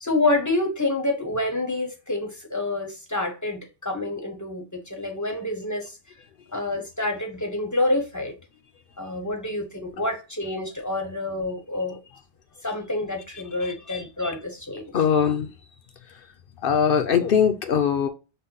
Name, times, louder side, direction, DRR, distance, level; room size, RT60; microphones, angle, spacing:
voice 1, 0.0-6.0 6.5-8.3 9.0-12.0 12.6-14.8, left 2 dB, 20° left, 0.6 m, -27 dB
voice 2, 13.6-14.0 14.9-15.5 16.0-16.3 16.6-18.1, left 7 dB, 60° left, 0.6 m, -22 dB
5.7 x 2.1 x 3.7 m
omnidirectional pair, 1.2 m